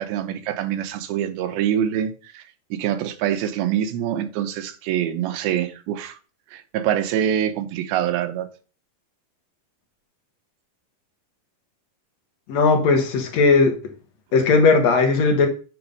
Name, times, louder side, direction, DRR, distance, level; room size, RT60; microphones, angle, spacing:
voice 1, 0.0-2.4 2.7-6.2 6.5-8.5, right 10 dB, 85° right, 2.7 m, -25 dB
voice 2, 12.5-13.7 14.3-15.5, left 4 dB, 60° left, 2.0 m, -17 dB
9.3 x 3.6 x 5.2 m
omnidirectional pair, 4.2 m